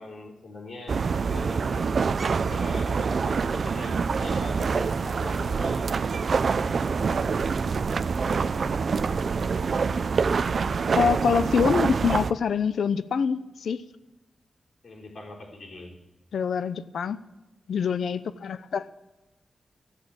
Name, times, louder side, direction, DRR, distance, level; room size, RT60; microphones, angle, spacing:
voice 1, 0.0-2.0 2.5-6.1 14.8-16.0, left 2 dB, 60° left, -2 dB, 3.6 m, -41 dB
sound 1, 0.9-12.3, right 5 dB, 55° right, 0.5 m, -26 dB
voice 2, 10.9-13.8 16.3-17.2 17.7-18.9, left 6 dB, 80° left, 15 dB, 0.6 m, -25 dB
13.5 x 8.8 x 8.8 m, 1.1 s
wide cardioid pair, 135°, 0 cm